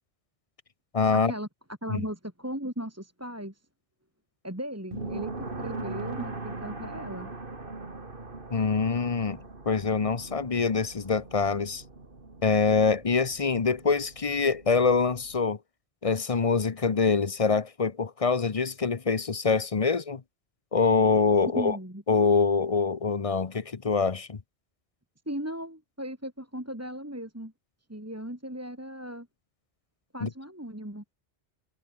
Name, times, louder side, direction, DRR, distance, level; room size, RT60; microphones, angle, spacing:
voice 1, 0.9-1.3 1.9-2.0 8.5-9.4 9.7-11.8 12.4-15.6 16.0-20.2 20.7-21.8 22.1-24.4 30.2-30.3, left 5 dB, 35° left, 0.8 m, -25 dB
voice 2, 1.8-3.6 4.4-5.3 5.6-7.3 21.5-22.0 25.3-27.5 27.9-29.3 30.1-31.0, equal, 15° right, 3.0 m, -37 dB
sound 1, 4.9-15.5, right 3 dB, 50° right, 2.9 m, -41 dB
omnidirectional pair, 1.2 m